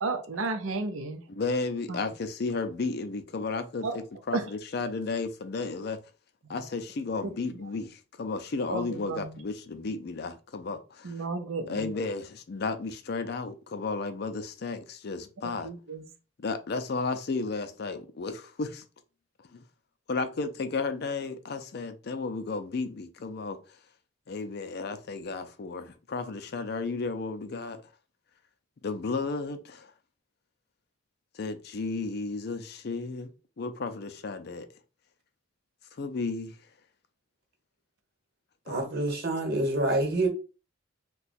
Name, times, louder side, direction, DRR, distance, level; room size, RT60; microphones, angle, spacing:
voice 1, 0.0-1.2 1.9-2.0 3.8-4.0 4.3-4.4 8.7-9.3 11.0-11.9 15.6-16.0, right 3 dB, 90° right, 0.6 m, -32 dB
voice 2, 1.3-6.0 6.5-11.1 11.7-15.7 16.4-18.8 19.5-19.6 20.1-23.6 24.3-27.8 28.8-29.9 31.3-33.3 33.6-34.7 36.0-36.5 38.7-38.8, left 3 dB, 55° left, 0.4 m, -33 dB
voice 3, 38.7-40.3, right 2 dB, 50° right, 1.0 m, -27 dB
2.8 x 2.2 x 4.1 m
head